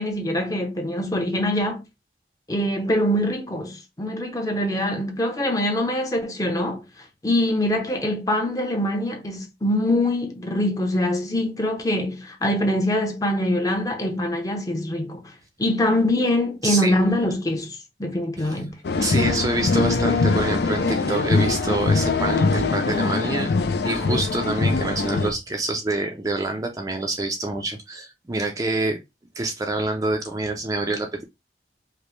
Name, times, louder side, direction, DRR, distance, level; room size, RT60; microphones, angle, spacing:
voice 1, 0.0-1.8 2.5-6.8 7.2-15.2 15.6-18.8, left 1 dB, 20° left, 0.7 m, -24 dB
voice 2, 16.6-17.0 18.4-18.6 19.0-29.0 29.4-31.2, right 2 dB, 20° right, 0.4 m, -27 dB
sound 1, 18.8-25.3, left 3 dB, 65° left, 0.4 m, -22 dB
5.0 x 2.1 x 3.1 m
head